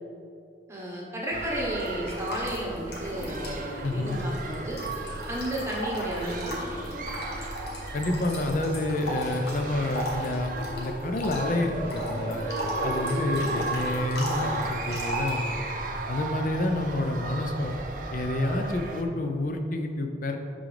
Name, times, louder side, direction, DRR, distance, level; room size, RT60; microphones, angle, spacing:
voice 1, 0.7-4.8 5.3-6.8, right 1 dB, 15° right, -4 dB, 1.1 m, -32 dB
sound 1, 1.3-19.0, right 3 dB, 50° right, 0.5 m, -36 dB
sound 2, 1.7-3.6 3.8-15.4, equal, 65° left, 1.3 m, -36 dB
sound 3, 2.3-16.2, equal, 25° left, 1.5 m, -41 dB
voice 2, 3.8-4.2 7.9-12.5 12.8-14.6 14.9-15.7 16.1-17.7 18.1-20.4, left 1 dB, 45° left, 5 dB, 0.5 m, -28 dB
11.0 x 3.8 x 3.3 m, 2.6 s
head